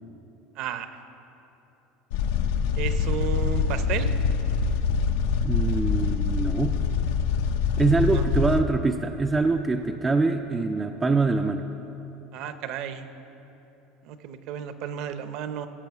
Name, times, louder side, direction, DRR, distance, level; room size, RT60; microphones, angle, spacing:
voice 1, 0.6-0.9 2.8-4.1 8.1-8.3 12.3-13.1 14.0-15.7, right 9 dB, 50° right, 10 dB, 0.6 m, -33 dB
sound 1, 2.1-8.6, left 5 dB, 85° left, 0.6 m, -25 dB
voice 2, 5.4-6.8 7.8-11.6, right 3 dB, 10° right, 5 dB, 0.3 m, -24 dB
17.0 x 7.0 x 5.9 m, 3.0 s
cardioid pair, 175°, 0 cm